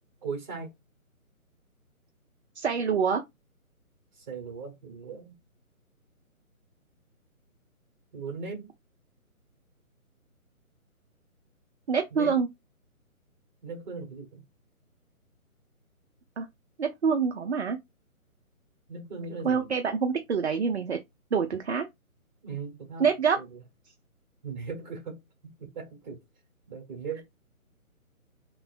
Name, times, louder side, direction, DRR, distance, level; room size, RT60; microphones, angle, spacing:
voice 1, 0.2-0.7 4.1-5.4 8.1-8.7 12.1-12.4 13.6-14.4 18.9-19.7 22.4-23.1 23.4-23.6 24.4-25.2 25.6-26.2 26.7-27.2, right 5 dB, 30° right, 1.2 m, -38 dB
voice 2, 2.6-3.2 11.9-12.5 16.4-16.5 16.8-17.8 19.4-21.0 21.3-21.9 23.0-23.4, right 6 dB, 50° right, 0.5 m, -26 dB
3.2 x 2.1 x 2.4 m
figure-of-eight pair, 145°, 43 cm